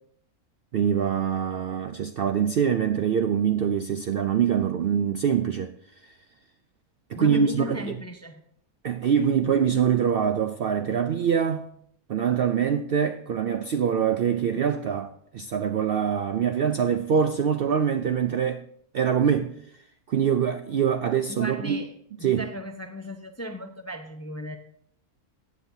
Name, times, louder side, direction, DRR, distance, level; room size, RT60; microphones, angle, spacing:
voice 1, 0.7-5.7 6.0-6.1 7.1-8.0 8.8-11.7 12.1-18.6 18.9-19.6 20.1-21.8 22.2-22.4, right 8 dB, 85° right, 0.5 m, -24 dB
voice 2, 7.2-8.4 21.3-21.9 22.2-24.6, left 1 dB, 20° left, 0.4 m, -36 dB
15.0 x 9.6 x 2.7 m
omnidirectional pair, 1.6 m